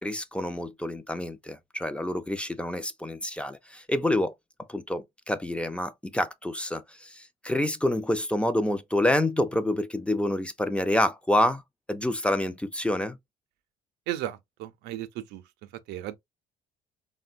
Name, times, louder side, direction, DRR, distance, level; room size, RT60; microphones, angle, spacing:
voice 1, 0.0-4.3 4.7-11.6 11.9-13.2, left 1 dB, 5° left, 0.4 m, -27 dB
voice 2, 14.1-16.2, right 14 dB, 90° right, 0.4 m, -36 dB
3.7 x 2.1 x 2.4 m
cardioid pair, 110°, 17 cm